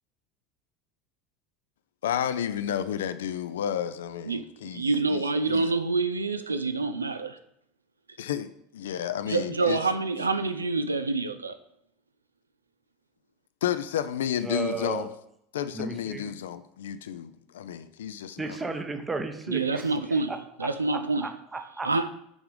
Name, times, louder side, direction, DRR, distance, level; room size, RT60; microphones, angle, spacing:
voice 1, 2.0-4.8 5.1-5.2 5.5-5.7 8.2-9.8 13.6-15.1 15.5-18.6, left 9 dB, 70° left, 12 dB, 0.3 m, -31 dB
voice 2, 4.2-7.4 9.3-11.5 19.5-20.3 20.6-21.3 21.8-22.1, right 3 dB, 85° right, 11 dB, 0.3 m, -27 dB
voice 3, 14.4-15.1 15.7-16.3 18.4-22.1, right 3 dB, 15° right, 7 dB, 0.8 m, -35 dB
6.2 x 3.6 x 4.8 m, 0.75 s
figure-of-eight pair, 75°, 0 cm